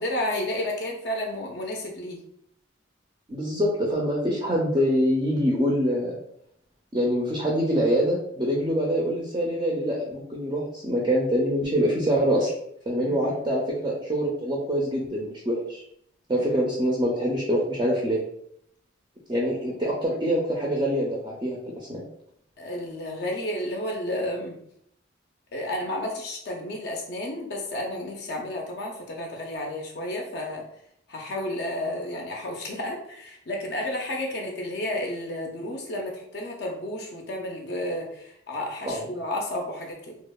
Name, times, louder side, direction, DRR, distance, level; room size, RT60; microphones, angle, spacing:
voice 1, 0.0-2.2 13.0-13.5 16.4-16.5 22.6-24.6 25.5-30.7 31.1-40.2, left 1 dB, 55° left, 1 dB, 0.4 m, -32 dB
voice 2, 3.3-6.1 6.9-12.5 12.9-15.8 16.3-18.2 19.3-21.6 21.9-22.0 38.9-39.0, equal, 25° right, -4 dB, 0.4 m, -25 dB
2.8 x 2.0 x 2.2 m, 0.71 s
head